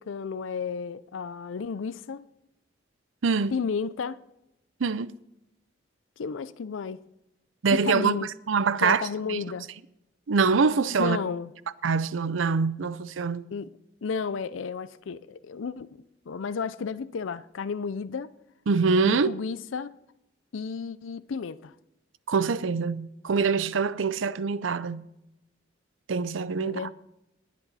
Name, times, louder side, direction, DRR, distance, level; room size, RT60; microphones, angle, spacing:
voice 1, 0.0-2.2 3.5-4.2 6.2-7.0 7.8-8.3 8.8-9.7 11.0-11.5 13.5-13.7 14.0-16.0 16.3-18.3 19.0-19.9 20.5-21.7 26.6-26.9, left 5 dB, 90° left, 0.5 m, -32 dB
voice 2, 3.2-3.6 4.8-5.1 7.6-8.2 8.5-9.0 9.3-9.4 10.3-11.2 11.8-13.4 18.7-19.3 22.3-25.0 26.1-26.9, right 5 dB, 85° right, 0.6 m, -24 dB
19.5 x 8.5 x 4.1 m
head